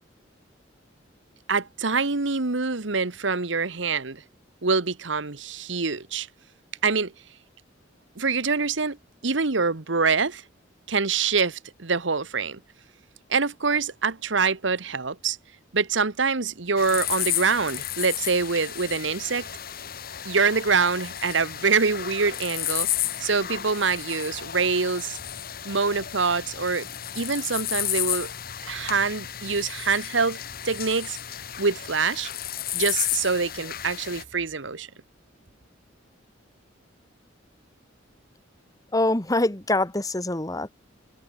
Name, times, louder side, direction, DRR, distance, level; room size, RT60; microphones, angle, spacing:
voice 1, 1.5-4.2 4.6-6.3 6.8-7.1 8.2-9.0 9.2-10.4 10.9-12.6 13.3-15.4 15.7-19.5 20.2-22.9 23.2-25.2 25.6-26.9 27.1-28.3 28.6-30.4 30.6-31.2 31.6-32.3 32.7-34.9, right 4 dB, 70° right, 1.3 m, -25 dB
sound 1, 16.8-34.2, left 12 dB, 50° left, 1.8 m, -32 dB
voice 2, 38.9-40.7, left 2 dB, 20° left, 1.4 m, -24 dB
head